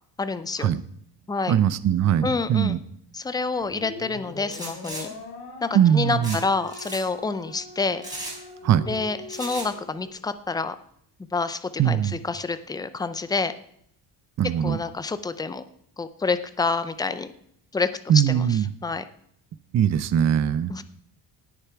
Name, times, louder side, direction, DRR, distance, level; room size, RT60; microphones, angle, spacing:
voice 1, 0.2-0.7 1.3-1.5 2.2-2.8 3.1-5.1 5.6-8.2 8.9-10.8 11.3-13.5 14.6-15.6 16.0-17.3 17.7-19.0 20.7-20.8, left 4 dB, 10° left, 12 dB, 0.4 m, -28 dB
voice 2, 1.5-2.8 5.7-6.4 8.6-8.9 11.8-12.2 14.4-14.8 18.1-18.7 19.7-20.8, right 9 dB, 40° right, 14 dB, 0.5 m, -21 dB
sound 1, 3.6-10.1, left 3 dB, 65° left, 2.3 m, -42 dB
sound 2, 4.5-5.0 6.2-6.4 6.7-7.0 8.0-8.4 9.3-9.7, right 1 dB, 10° right, 4.1 m, -35 dB
18.0 x 6.9 x 4.6 m, 0.68 s
cardioid pair, 170°, 42 cm